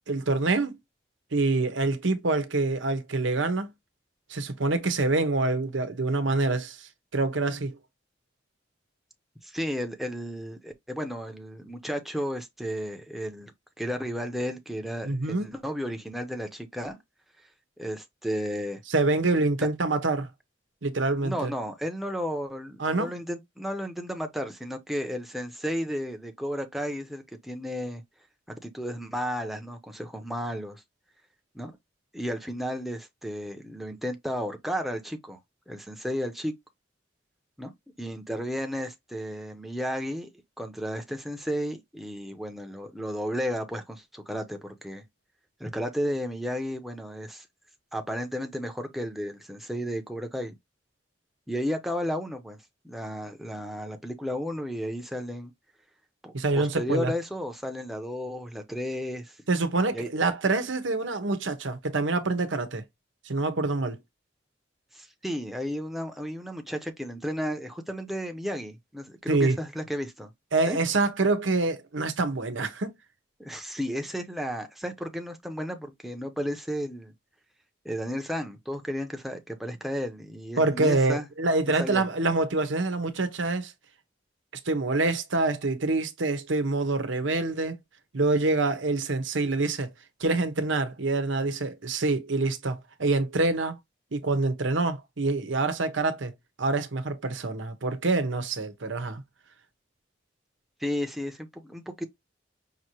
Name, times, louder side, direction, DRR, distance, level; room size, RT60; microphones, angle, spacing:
voice 1, 0.1-0.7 1.3-3.7 4.3-7.7 15.0-15.5 18.9-20.3 20.8-21.5 22.8-23.1 56.3-57.1 59.5-62.8 63.2-64.0 69.3-69.6 70.5-72.9 80.6-83.7 84.7-87.8 88.1-89.9 90.2-93.8 94.1-96.3 96.6-99.2, right 3 dB, 90° right, 1.0 m, -26 dB
voice 2, 9.4-13.5 13.8-17.0 17.8-18.8 21.2-28.0 28.6-30.8 31.5-31.7 32.1-35.4 35.7-36.5 37.6-37.7 38.0-40.3 40.6-45.0 45.6-47.5 47.9-50.5 51.5-52.6 52.8-55.5 56.2-59.4 59.9-60.1 64.9-70.3 70.7-70.8 73.4-77.1 77.8-81.3 81.8-82.1 100.8-102.0, equal, ahead, 0.7 m, -33 dB
5.8 x 2.7 x 3.0 m
head